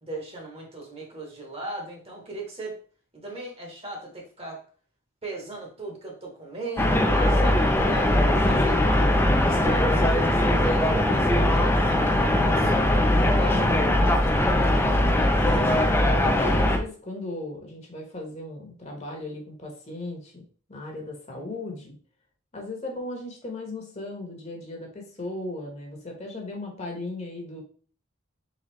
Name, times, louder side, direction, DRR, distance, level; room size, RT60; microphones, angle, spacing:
voice 1, 0.0-2.7 3.1-4.6 5.2-8.8 9.3-12.7 21.3-21.4, right 2 dB, 30° right, 0 dB, 1.2 m, -37 dB
sound 1, 6.8-16.8, left 1 dB, 10° left, 0.5 m, -21 dB
voice 2, 13.3-15.0 15.4-20.4 20.7-21.9 22.5-27.6, left 2 dB, 35° left, 1 dB, 1.2 m, -36 dB
4.1 x 3.8 x 3.1 m, 0.42 s
head